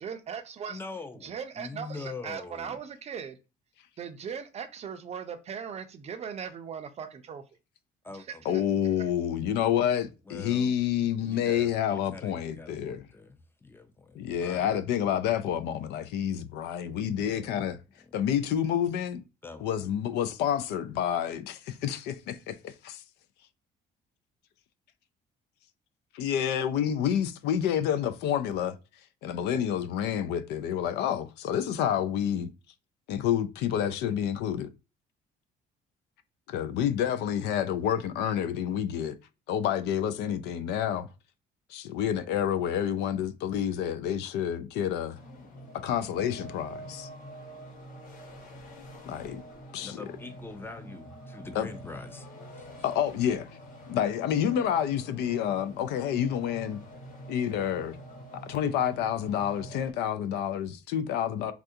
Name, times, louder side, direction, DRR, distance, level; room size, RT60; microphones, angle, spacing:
voice 1, 0.0-0.8 1.2-3.4 4.0-7.4 8.1-8.6 9.0-9.1, right 7 dB, 40° right, 0.5 m, -39 dB
voice 2, 0.7-2.8 8.0-8.4 10.3-10.8 11.2-14.8 17.1-17.7 18.1-18.2 19.4-19.8 49.8-52.3 52.6-52.7, left 3 dB, 15° left, 0.5 m, -43 dB
voice 3, 8.5-13.0 14.1-17.8 18.1-19.2 19.6-23.0 26.1-28.8 29.2-32.5 33.1-34.7 36.5-39.2 39.5-41.1 41.7-45.2 45.7-47.1 49.1-49.4 49.7-50.0 51.6-51.7 52.8-53.5 53.9-56.8 57.3-58.0 58.5-61.5, left 9 dB, 85° left, 0.4 m, -29 dB
sound 1, 45.1-59.9, equal, 55° left, 1.1 m, -46 dB
3.5 x 2.4 x 2.6 m
cardioid pair, 110°, 17 cm